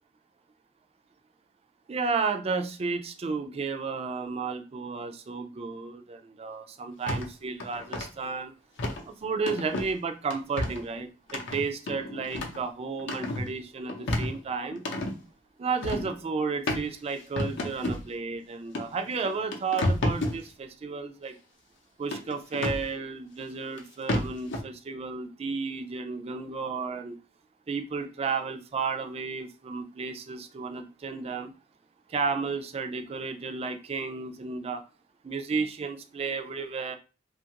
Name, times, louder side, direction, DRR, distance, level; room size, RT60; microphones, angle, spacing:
voice 1, 1.9-8.5 9.0-14.8 15.6-21.3 22.0-27.2 27.7-31.5 32.1-34.8 35.2-36.9, right 4 dB, 30° right, 7 dB, 0.3 m, -32 dB
sound 1, 7.1-7.3 7.6-8.1 8.8-9.0 9.5-9.9 10.3-10.8 11.3-12.6 13.0-13.5 13.9-15.1 15.8-16.1 16.7-16.8 17.4-18.0 18.7-18.8 19.2-20.4 22.1-22.9 23.8-23.9 24.1-24.6, left 1 dB, 60° left, 0.6 m, -30 dB
2.8 x 2.4 x 2.8 m, 0.33 s
head